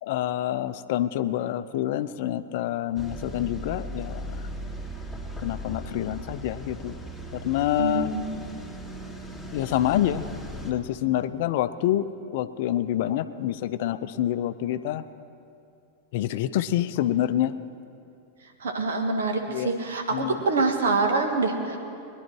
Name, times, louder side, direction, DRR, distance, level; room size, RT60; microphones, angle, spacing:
voice 1, 0.0-4.3 5.4-7.0 7.3-8.1 9.5-10.2 10.6-12.1 12.3-15.0 16.1-17.5 19.5-19.7 20.1-20.4, left 12 dB, 50° left, 12 dB, 0.5 m, -27 dB
sound 1, 2.9-10.7, right 1 dB, 10° right, 2.5 m, -38 dB
voice 2, 7.8-8.3 18.6-21.8, right 3 dB, 65° right, 4 dB, 1.6 m, -25 dB
22.0 x 10.5 x 4.6 m, 2.5 s
figure-of-eight pair, 90°, 0 cm